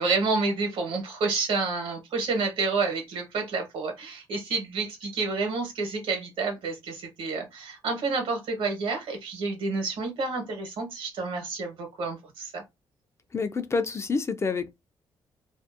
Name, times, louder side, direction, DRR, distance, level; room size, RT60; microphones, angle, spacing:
voice 1, 0.0-12.6, right 4 dB, 80° right, 1.0 m, -29 dB
voice 2, 13.3-14.7, left 4 dB, 30° left, 0.3 m, -28 dB
2.5 x 2.0 x 2.4 m
cardioid pair, 95°, 9 cm